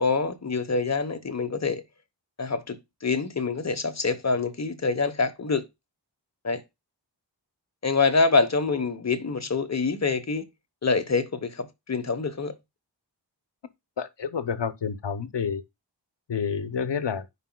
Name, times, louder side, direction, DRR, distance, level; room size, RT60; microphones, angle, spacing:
voice 1, 0.0-1.8 2.4-2.8 3.0-5.6 6.4-6.6 7.8-10.4 10.8-12.5, left 4 dB, 40° left, 1.0 m, -25 dB
voice 2, 14.0-15.6 16.3-17.2, left 6 dB, 75° left, 0.8 m, -29 dB
9.9 x 5.0 x 2.2 m
wide cardioid pair, 55°, 43 cm